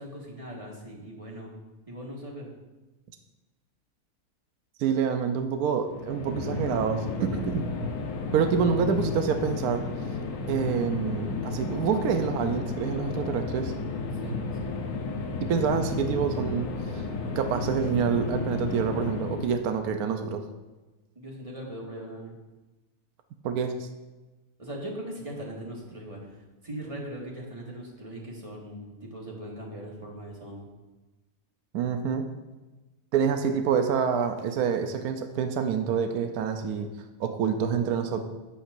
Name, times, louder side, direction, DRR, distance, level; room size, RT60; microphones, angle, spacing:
voice 1, 0.0-1.5 1.9-2.5 14.1-14.7 21.1-22.3 24.6-30.7, right 1 dB, 20° right, -2 dB, 1.6 m, -40 dB
voice 2, 4.8-7.7 8.3-9.8 10.5-13.7 15.4-17.1 17.4-20.4 23.4-23.9 31.7-32.2 33.1-36.9 37.2-38.2, right 7 dB, 75° right, 7 dB, 1.1 m, -27 dB
sound 1, 5.9-19.7, left 3 dB, 80° left, 1.3 m, -32 dB
9.8 x 8.5 x 2.5 m, 1.1 s
omnidirectional pair, 1.6 m